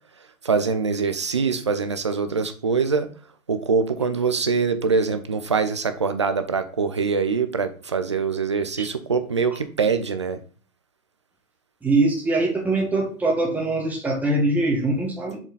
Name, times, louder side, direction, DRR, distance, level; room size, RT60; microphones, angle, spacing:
voice 1, 0.4-3.1 3.5-10.4, right 5 dB, 25° right, 0.3 m, -23 dB
voice 2, 11.8-15.4, right 2 dB, 5° right, 1.5 m, -22 dB
7.1 x 5.0 x 3.9 m
figure-of-eight pair, 125°, 43 cm